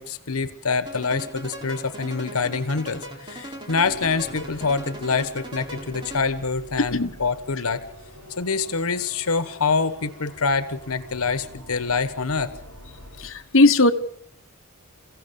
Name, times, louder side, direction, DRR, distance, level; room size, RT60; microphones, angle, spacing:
voice 1, 0.0-7.8 8.4-12.5, left 4 dB, 85° left, 13 dB, 1.2 m, -25 dB
sound 1, 0.9-6.5, right 1 dB, 20° right, 3.9 m, -39 dB
sound 2, 3.8-13.3, equal, 80° right, 7.1 m, -45 dB
voice 2, 13.2-13.9, left 2 dB, 65° left, 4 dB, 1.2 m, -17 dB
29.0 x 15.5 x 7.0 m, 0.72 s
head